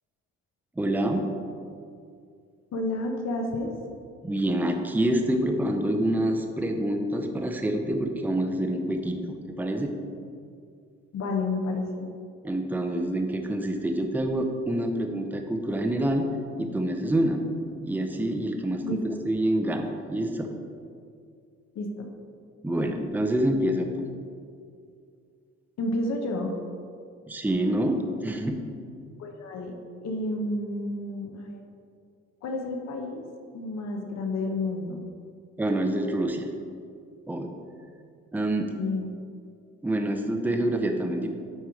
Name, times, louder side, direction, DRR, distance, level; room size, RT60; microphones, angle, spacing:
voice 1, 0.8-1.4 4.2-9.9 12.4-16.3 16.6-17.4 17.8-20.5 22.6-24.0 27.3-28.7 35.6-36.5 37.3-37.5 38.3-38.7 39.8-41.3, right 1 dB, 5° right, 4 dB, 0.6 m, -27 dB
voice 2, 2.7-3.7 11.1-12.1 18.8-19.2 21.7-22.1 25.8-26.5 29.2-29.7 30.0-31.6 32.4-33.2 33.5-35.0 38.7-39.1, left 2 dB, 60° left, 2 dB, 0.9 m, -30 dB
8.9 x 3.0 x 4.8 m, 2.3 s
cardioid pair, 90°, 30 cm